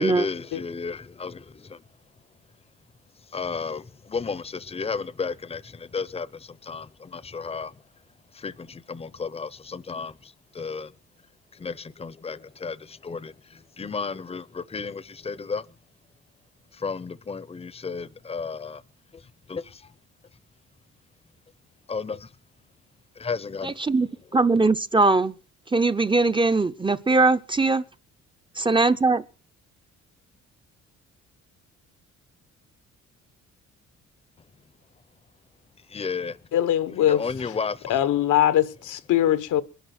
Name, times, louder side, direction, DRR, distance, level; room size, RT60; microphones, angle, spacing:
voice 1, 0.0-1.8 3.3-7.7 8.3-10.9 11.5-15.7 16.7-18.8 19.1-19.2 19.5-19.9 21.9-22.3 23.2-23.7 35.9-36.4 37.0-37.9, left 5 dB, 20° left, 0.8 m, -33 dB
voice 2, 23.6-25.3 25.7-27.8 28.6-29.2, right 3 dB, 15° right, 0.7 m, -21 dB
voice 3, 36.5-37.2 37.9-39.6, left 11 dB, 80° left, 1.2 m, -21 dB
21.5 x 11.0 x 6.0 m
cardioid pair, 90°, 30 cm